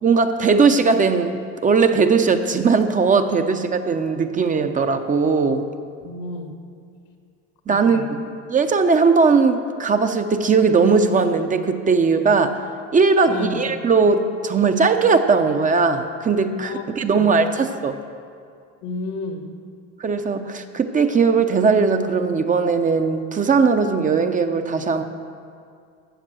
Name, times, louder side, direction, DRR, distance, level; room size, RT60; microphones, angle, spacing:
voice 1, 0.0-5.7 7.7-8.2 8.5-12.6 12.9-18.0 20.0-25.0, right 4 dB, 25° right, 7 dB, 0.7 m, -19 dB
voice 2, 6.0-6.5 7.7-8.0 13.3-13.7 16.5-16.8 17.2-17.4 18.8-19.5, left 3 dB, 75° left, 4 dB, 1.8 m, -31 dB
14.5 x 7.1 x 6.3 m, 2.2 s
supercardioid pair, 110°, 31 cm